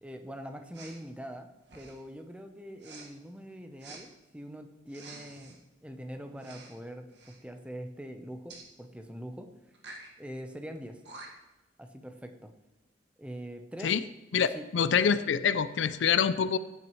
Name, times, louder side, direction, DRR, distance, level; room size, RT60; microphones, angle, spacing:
voice 1, 0.0-9.5 10.2-11.0 11.8-12.5 13.2-14.0 14.5-14.7, equal, 5° right, 5 dB, 0.7 m, -43 dB
Respiratory sounds, 0.7-1.0 1.6-2.1 2.8-3.1 3.8-4.0 4.9-5.6 6.4-6.8 7.1-7.4 8.5-8.7 9.7-10.1 10.8-10.9 11.0-11.5, right 3 dB, 65° right, 1.7 m, -48 dB
voice 2, 14.3-16.6, left 7 dB, 85° left, 14 dB, 0.4 m, -26 dB
15.0 x 9.0 x 3.1 m, 1.0 s
head